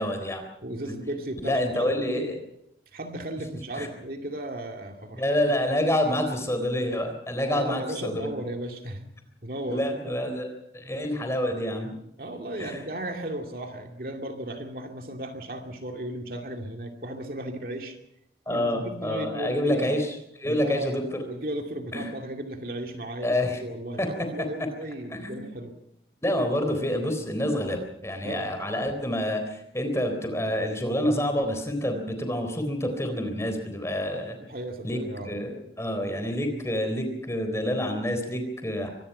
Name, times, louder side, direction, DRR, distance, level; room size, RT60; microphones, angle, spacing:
voice 1, 0.0-0.4 1.4-2.4 3.8-3.9 5.1-8.3 9.7-10.5 10.7-11.9 12.6-12.8 18.5-20.1 20.4-21.0 21.9-22.1 23.2-23.6 24.0-24.1 25.1-25.4 26.2-34.3 34.8-38.9, left 1 dB, 15° left, 6 dB, 3.7 m, -27 dB
voice 2, 0.6-2.4 2.9-5.7 7.5-9.1 9.4-10.2 12.2-18.0 18.5-20.0 20.4-25.7 28.2-28.5 34.4-35.3, right 1 dB, 55° right, 3 dB, 2.5 m, -35 dB
24.5 x 20.0 x 5.7 m, 0.77 s
head